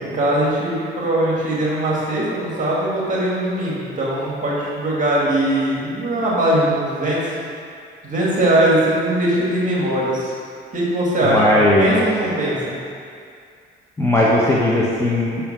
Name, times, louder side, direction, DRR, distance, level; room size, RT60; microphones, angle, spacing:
voice 1, 0.0-7.2 8.0-10.3 10.7-12.7, right 1 dB, 40° right, -5 dB, 2.0 m, -20 dB
voice 2, 11.2-12.0 14.0-15.5, left 1 dB, 15° left, -6 dB, 1.1 m, -17 dB
6.0 x 5.6 x 5.9 m, 2.3 s
cardioid pair, 90°, 20 cm